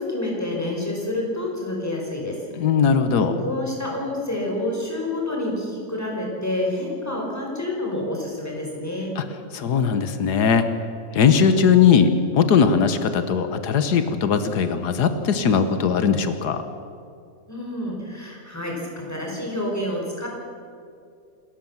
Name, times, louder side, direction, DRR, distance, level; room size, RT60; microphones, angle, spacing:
voice 1, 0.0-2.4 3.2-9.1 17.5-20.3, left 1 dB, 10° left, -1 dB, 4.8 m, -28 dB
voice 2, 2.6-3.3 9.2-9.3 9.5-10.7 11.1-16.6, left 6 dB, 90° left, 9 dB, 1.7 m, -19 dB
27.0 x 14.0 x 7.3 m, 2.4 s
omnidirectional pair, 1.7 m